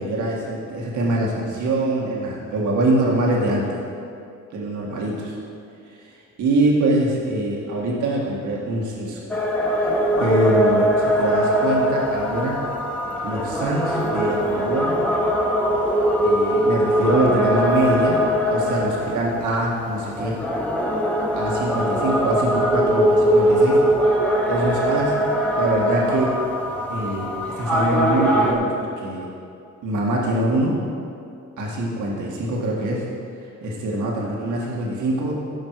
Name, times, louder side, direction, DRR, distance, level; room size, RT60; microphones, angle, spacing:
voice 1, 0.0-3.8 4.5-5.1 6.4-9.2 10.2-12.6 13.2-15.0 16.2-18.2 18.5-20.4 21.3-23.8 24.4-25.2 25.5-26.3 26.9-27.3 27.6-29.3 29.8-30.8 31.6-33.0 33.6-35.4, right 1 dB, 75° right, -3 dB, 1.8 m, -23 dB
sound 1, 9.3-28.5, equal, 5° left, 1.3 m, -21 dB
14.5 x 5.3 x 4.7 m, 2.5 s
cardioid pair, 90°, 30 cm